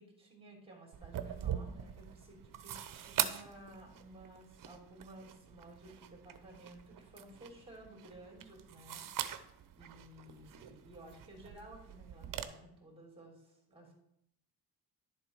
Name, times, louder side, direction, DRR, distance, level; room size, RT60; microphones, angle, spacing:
voice 1, 0.0-9.4 9.8-13.9, right 1 dB, 15° right, 1 dB, 3.0 m, -55 dB
sound 1, 0.9-12.4, right 10 dB, 50° right, 0.8 m, -43 dB
11.0 x 7.2 x 4.7 m, 0.77 s
wide cardioid pair, 175°, 42 cm